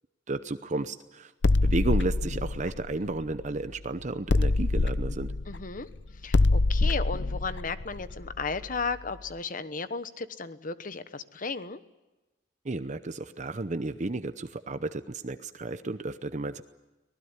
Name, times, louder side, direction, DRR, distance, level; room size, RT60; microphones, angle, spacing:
voice 1, 0.3-1.3 1.6-5.3 12.6-16.6, right 2 dB, 40° right, 11 dB, 0.8 m, -32 dB
sound 1, 1.4-3.8 4.3-9.0, left 2 dB, 70° left, 0.7 m, -26 dB
voice 2, 5.5-5.9 6.2-11.8, left 4 dB, 45° left, 13 dB, 1.1 m, -34 dB
24.5 x 19.5 x 9.7 m, 1.1 s
head